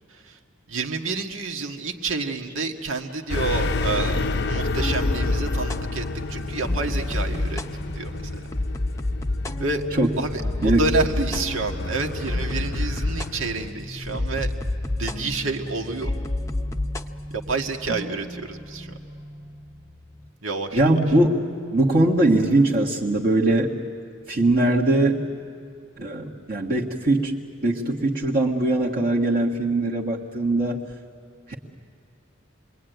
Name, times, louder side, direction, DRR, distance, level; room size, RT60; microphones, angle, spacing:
voice 1, 0.7-7.6 7.9-8.4 9.6-9.8 10.2-14.5 14.9-16.1 17.3-19.0 20.4-21.0, right 3 dB, 75° right, 3 dB, 1.7 m, -29 dB
sound 1, 3.3-13.7, left 3 dB, 55° left, 0.7 m, -30 dB
sound 2, 4.0-20.3, left 1 dB, 15° left, 0.7 m, -30 dB
voice 2, 20.7-21.4 21.7-23.7 24.3-25.2 26.0-27.3 27.6-30.8 31.5-31.6, right 2 dB, 45° right, -5 dB, 1.8 m, -21 dB
28.0 x 22.0 x 9.3 m, 2.4 s
head